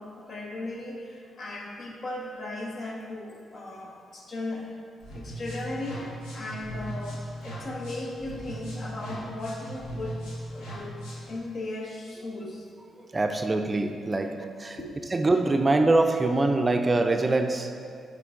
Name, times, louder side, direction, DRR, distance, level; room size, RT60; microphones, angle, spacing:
voice 1, 0.0-4.7 5.1-10.2 10.5-12.7 14.7-15.0, left 2 dB, 55° left, -1 dB, 1.1 m, -37 dB
sound 1, 5.0-11.4, right 1 dB, 85° left, 1.2 m, -38 dB
voice 2, 13.1-14.8 15.1-17.7, right 2 dB, 30° right, 5 dB, 0.4 m, -24 dB
8.4 x 3.3 x 3.8 m, 2.3 s
supercardioid pair, 60°, 0 cm